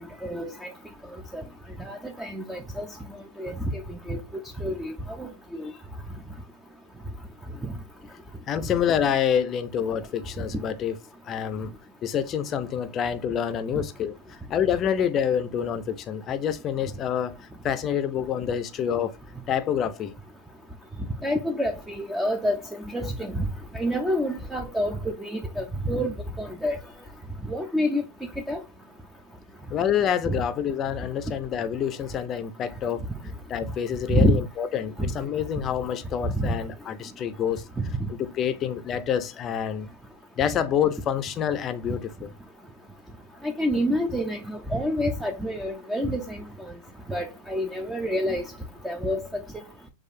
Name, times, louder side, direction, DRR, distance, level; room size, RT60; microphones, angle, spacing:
voice 1, 0.2-0.7 1.3-1.4 1.8-2.9 3.4-4.2 4.6-4.9 5.2-5.3 5.6-5.7 21.2-22.6 22.9-23.4 23.7-26.8 27.5-28.0 28.5-28.6 30.3-30.4 34.1-34.4 35.0-35.1 36.4-36.5 38.0-38.1 43.4-44.4 44.7-46.4 47.1-48.5 48.8-49.4, equal, 5° right, 0.6 m, -27 dB
voice 2, 8.5-10.9 11.2-11.7 12.0-17.4 17.6-19.1 19.5-20.1 29.7-33.0 33.5-37.6 38.1-39.9 40.4-42.3, left 8 dB, 35° left, 0.6 m, -27 dB
6.3 x 2.4 x 2.6 m
hypercardioid pair, 100°, 0 cm